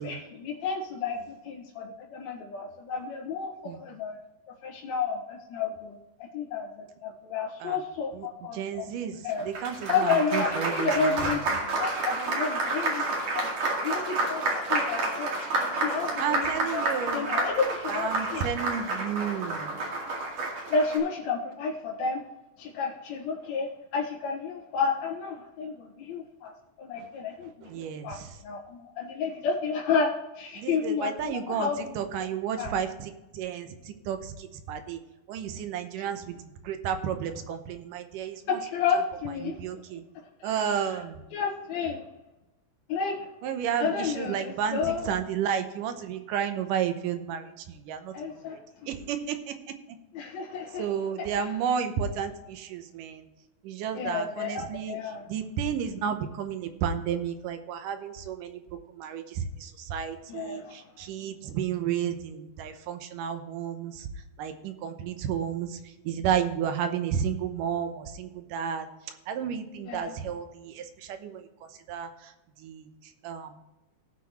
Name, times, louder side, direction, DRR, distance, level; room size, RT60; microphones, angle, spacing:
voice 1, 0.0-4.2 4.6-8.9 9.2-9.5 9.9-13.0 13.3-13.5 13.8-15.4 15.7-16.5 16.7-16.8 17.1-18.5 20.7-22.2 22.6-26.5 26.8-31.9 32.6-32.7 38.5-39.8 40.4-40.7 41.3-42.0 42.9-43.3 43.8-45.0 48.1-48.6 50.1-50.9 51.2-51.5 53.9-55.3 60.3-60.8 69.9-70.1, left 5 dB, 85° left, -3 dB, 3.5 m, -31 dB
voice 2, 8.5-11.4 16.2-17.3 17.9-19.7 27.0-27.1 27.6-28.4 30.6-35.0 35.3-38.6 39.4-40.0 40.4-41.2 43.4-48.1 48.5-48.6 48.9-49.8 50.8-53.3 53.6-55.0 55.3-58.6 58.9-64.1 64.4-71.5 71.9-73.6, right 8 dB, 75° right, 8 dB, 2.3 m, -32 dB
Applause, 9.3-21.0, right 2 dB, 50° right, 3.1 m, -30 dB
17.5 x 6.3 x 3.1 m, 1.0 s
omnidirectional pair, 4.2 m